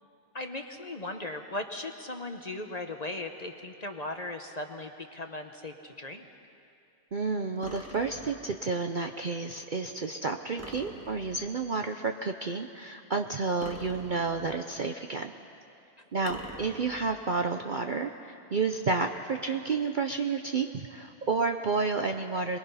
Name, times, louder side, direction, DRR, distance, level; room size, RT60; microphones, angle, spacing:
voice 1, 0.3-6.3, left 2 dB, 35° left, 5 dB, 0.9 m, -38 dB
voice 2, 7.1-15.3 16.1-18.1 18.5-22.6, right 4 dB, 45° right, 5 dB, 0.7 m, -30 dB
sound 1, 7.6-8.7 10.6-11.6 13.6-14.7 16.3-17.3, equal, 10° right, 1.3 m, -45 dB
26.5 x 20.5 x 5.6 m, 2.6 s
omnidirectional pair, 1.5 m